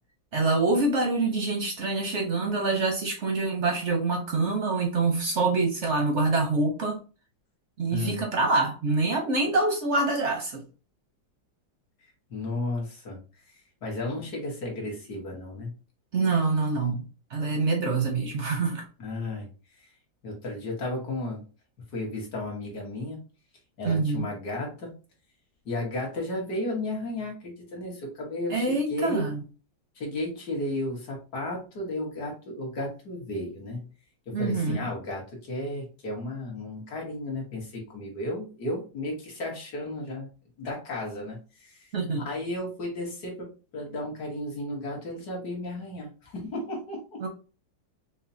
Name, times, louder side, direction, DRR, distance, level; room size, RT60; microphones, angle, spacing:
voice 1, 0.3-7.0 7.8-10.6 16.1-17.0 17.3-18.8 23.8-24.3 28.5-29.4 34.3-34.9 41.9-42.2 47.2-47.3, right 3 dB, 60° right, 0.8 m, -25 dB
voice 2, 7.9-8.2 12.3-13.2 13.8-15.7 19.0-19.5 19.8-19.9 20.2-21.4 21.9-23.2 23.8-24.9 25.7-29.3 30.0-33.9 34.4-40.3 40.6-41.9 42.2-43.5 43.7-47.3, left 1 dB, 60° left, 1.8 m, -33 dB
5.5 x 2.2 x 2.6 m
omnidirectional pair, 2.0 m